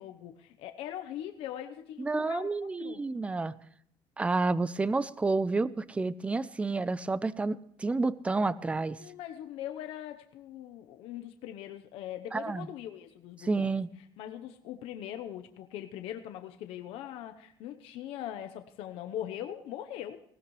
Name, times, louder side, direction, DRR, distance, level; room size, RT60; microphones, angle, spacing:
voice 1, 0.0-2.5 2.8-3.0 9.0-13.8 14.2-20.2, left 11 dB, 75° left, 7 dB, 0.9 m, -41 dB
voice 2, 2.0-3.5 4.2-9.0 12.3-12.7 13.4-13.9, right 3 dB, 10° right, 18 dB, 0.5 m, -30 dB
19.0 x 16.5 x 3.2 m, 0.68 s
cardioid pair, 135°, 10 cm